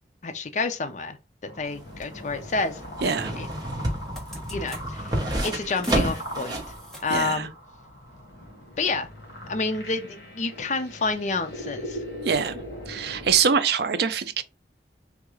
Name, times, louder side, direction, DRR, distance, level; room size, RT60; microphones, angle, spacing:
voice 1, 0.2-1.2 1.4-3.5 4.5-5.1 5.4-6.6 7.0-7.5 8.8-9.1 9.5-12.0, left 3 dB, 40° left, 0.4 m, -29 dB
sound 1, 1.5-13.4, equal, 60° left, 1.3 m, -40 dB
sound 2, 1.7-6.8 7.1-7.2, right 1 dB, 25° right, 0.9 m, -29 dB
sound 3, 2.0-2.1 3.4-3.6 3.9-4.9 5.8-7.2, equal, ahead, 0.8 m, -46 dB
voice 2, 7.1-7.5 12.2-12.6 12.9-14.4, right 6 dB, 65° right, 0.4 m, -24 dB
3.5 x 2.3 x 3.0 m
head